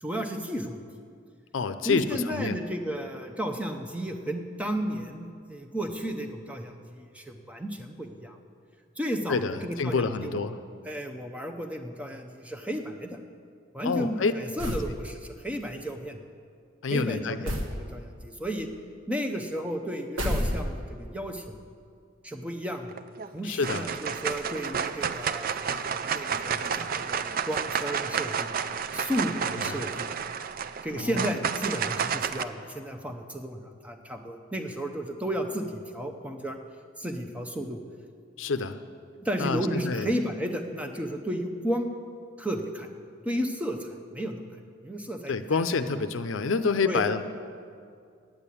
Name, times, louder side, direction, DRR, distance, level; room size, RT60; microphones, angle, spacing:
voice 1, 0.0-0.8 1.8-8.4 9.0-10.5 10.9-13.2 13.7-16.2 16.9-18.7 19.1-21.6 22.2-22.9 23.3-30.3 30.8-36.6 37.0-37.8 39.2-41.9 42.4-44.5 44.8-45.6 46.8-47.0, equal, 5° right, 4 dB, 0.7 m, -33 dB
voice 2, 1.5-2.6 9.3-10.6 13.8-14.3 14.6-14.8 16.8-17.5 23.4-23.8 29.7-29.8 30.9-31.2 38.4-38.8 39.4-40.1 45.3-47.2, left 4 dB, 75° left, 10 dB, 0.6 m, -28 dB
sound 1, 14.6-15.0 17.5-17.8 20.2-21.0, equal, 85° right, 1.3 m, -29 dB
sound 2, 22.9-23.3 23.6-32.4, right 7 dB, 45° right, 0.4 m, -31 dB
9.3 x 8.9 x 8.4 m, 2.3 s
head